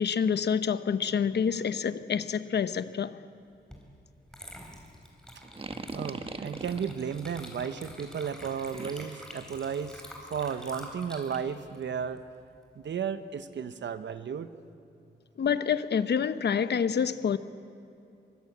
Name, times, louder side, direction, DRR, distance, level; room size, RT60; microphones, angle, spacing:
voice 1, 0.0-3.2 15.4-17.4, left 7 dB, 70° left, 0.9 m, -27 dB
Water / Liquid, 3.7-3.9 4.3-12.8, equal, 5° left, 4.1 m, -47 dB
sound 1, 5.4-7.0 8.7-9.2, right 3 dB, 30° right, 1.4 m, -39 dB
voice 2, 5.9-10.0 10.3-12.2 12.7-14.5, right 7 dB, 85° right, 1.1 m, -34 dB
24.0 x 23.5 x 8.6 m
wide cardioid pair, 130°, 18 cm